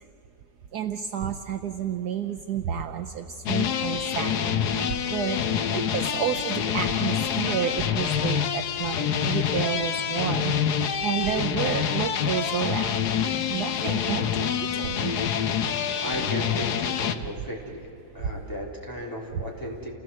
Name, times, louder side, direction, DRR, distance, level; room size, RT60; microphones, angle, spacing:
voice 1, 0.7-4.8 5.1-10.5 11.0-13.1 13.5-15.1, right 9 dB, 65° right, 6 dB, 1.2 m, -31 dB
sound 1, 3.5-17.2, left 8 dB, 65° left, 1.4 m, -26 dB
voice 2, 16.0-17.9 18.1-19.9, equal, 10° left, -2 dB, 3.6 m, -35 dB
29.5 x 17.0 x 7.6 m, 3.0 s
omnidirectional pair, 2.0 m